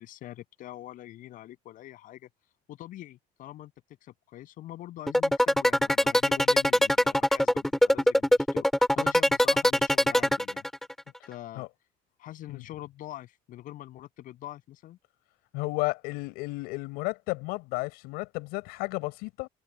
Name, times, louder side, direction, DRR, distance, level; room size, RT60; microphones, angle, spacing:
voice 1, 0.0-2.3 2.7-3.7 4.0-8.7 9.0-10.6 11.1-11.7 12.2-15.0, left 14 dB, 60° left, 7.2 m, -44 dB
sound 1, 5.1-11.0, equal, ahead, 4.5 m, -22 dB
voice 2, 15.5-19.5, left 24 dB, 85° left, 7.0 m, -33 dB
cardioid pair, 125°, 16 cm